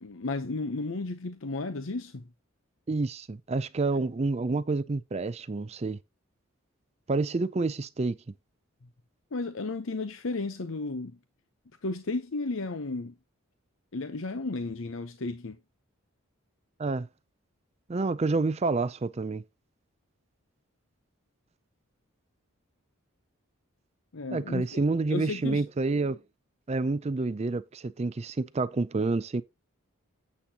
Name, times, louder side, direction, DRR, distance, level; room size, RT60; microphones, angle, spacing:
voice 1, 0.0-2.2 9.3-11.2 11.8-13.1 13.9-15.6 24.1-24.8 25.1-25.6, left 3 dB, 65° left, 0.8 m, -33 dB
voice 2, 2.9-6.0 7.1-8.2 16.8-17.1 17.9-19.4 24.3-26.2 26.7-29.4, right 3 dB, 30° right, 0.4 m, -28 dB
9.9 x 8.5 x 2.9 m
head